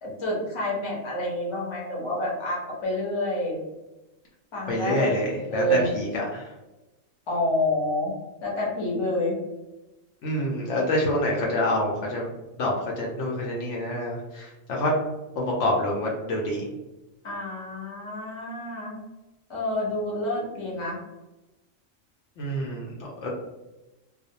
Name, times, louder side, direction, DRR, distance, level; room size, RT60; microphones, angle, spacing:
voice 1, 0.0-3.6 4.5-5.1 5.5-5.9 7.3-8.1 8.4-9.4 17.2-18.9 19.5-21.0, left 1 dB, 30° left, -4 dB, 0.6 m, -28 dB
voice 2, 4.7-6.5 10.2-12.3 12.6-14.9 15.4-16.7 22.4-22.9 23.2-23.3, left 1 dB, 70° left, -2 dB, 0.8 m, -27 dB
2.4 x 2.0 x 2.7 m, 1.0 s
omnidirectional pair, 1.4 m